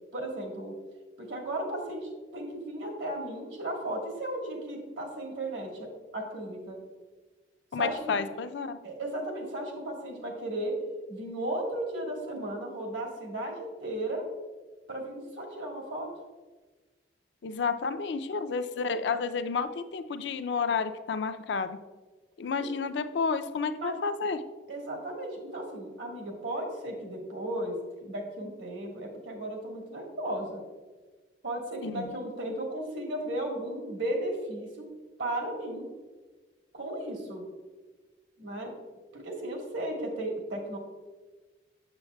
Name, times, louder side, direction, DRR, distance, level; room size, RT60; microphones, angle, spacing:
voice 1, 0.1-0.7 1.2-6.8 7.8-8.0 8.8-10.7 11.1-14.2 14.9-16.1 22.6-22.7 23.8-24.0 24.7-30.6 31.4-34.9 35.2-35.9 36.7-37.4 38.4-38.7 39.1-40.8, right 1 dB, 85° right, 0 dB, 1.5 m, -35 dB
voice 2, 7.7-8.8 17.4-21.8 22.4-24.4 31.8-32.1, left 5 dB, 70° left, 10 dB, 0.4 m, -31 dB
7.0 x 6.9 x 2.2 m, 1.3 s
head